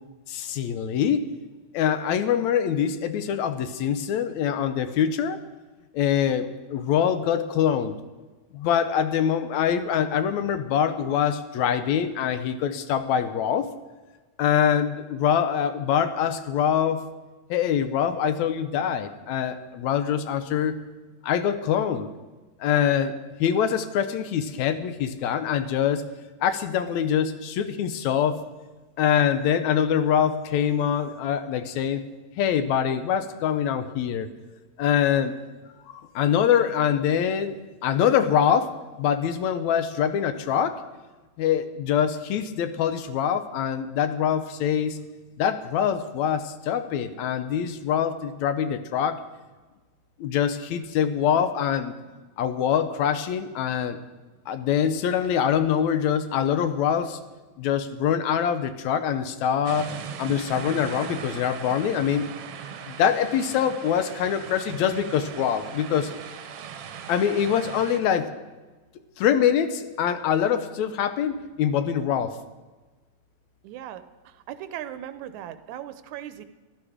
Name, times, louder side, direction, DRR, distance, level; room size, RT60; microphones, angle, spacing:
voice 1, 0.3-1.3 1.7-5.4 5.9-7.9 8.5-13.7 14.4-17.0 17.5-20.8 21.2-22.1 22.6-26.0 26.4-28.4 29.0-32.0 32.4-34.3 34.8-35.4 36.2-40.8 41.4-45.0 45.4-49.2 50.2-51.9 52.4-54.0 54.5-57.2 57.6-62.3 62.9-66.2 67.1-68.3 69.2-72.4, left 8 dB, 75° left, 11 dB, 2.0 m, -24 dB
sound 1, 59.6-68.0, right 7 dB, 65° right, 1.6 m, -39 dB
voice 2, 73.6-76.5, right 11 dB, 80° right, 12 dB, 2.0 m, -38 dB
15.0 x 11.5 x 5.0 m, 1.2 s
omnidirectional pair, 3.4 m